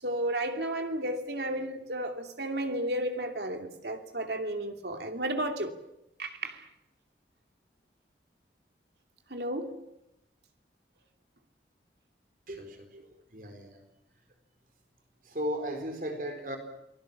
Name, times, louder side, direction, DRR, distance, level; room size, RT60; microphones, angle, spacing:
voice 1, 0.0-5.8 6.2-6.7 9.3-9.8 12.9-13.0, right 1 dB, 70° right, 2.8 m, -33 dB
voice 2, 12.5-13.8 15.3-16.6, equal, 50° right, 4.3 m, -36 dB
29.0 x 20.0 x 7.4 m
head